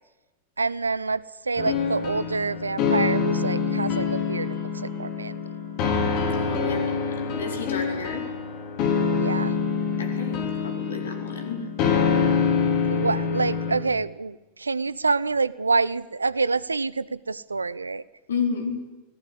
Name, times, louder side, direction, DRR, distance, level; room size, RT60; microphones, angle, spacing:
voice 1, 0.6-4.6 4.8-5.3 9.2-9.5 12.9-18.0, right 4 dB, 80° right, 20 dB, 0.8 m, -27 dB
sound 1, 1.6-13.8, left 5 dB, 40° left, 4.5 m, -25 dB
voice 2, 6.3-8.2 10.0-11.6 18.3-18.8, left 5 dB, 65° left, 5 dB, 4.6 m, -32 dB
24.0 x 18.0 x 10.0 m, 1.1 s
figure-of-eight pair, 90°, 0 cm